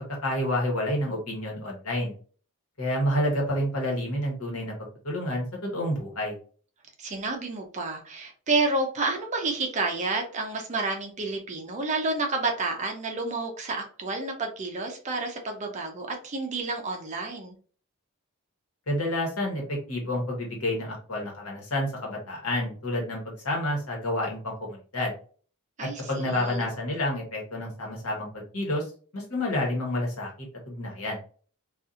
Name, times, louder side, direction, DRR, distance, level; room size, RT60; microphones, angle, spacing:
voice 1, 0.2-2.1 2.8-4.7 5.0-6.3 18.9-25.1 25.8-28.9 29.1-30.3 30.6-31.2, left 1 dB, 75° left, -1 dB, 1.1 m, -29 dB
voice 2, 7.0-17.6 25.8-26.6, right 3 dB, 35° right, 3 dB, 0.5 m, -30 dB
2.6 x 2.4 x 2.5 m, 0.41 s
head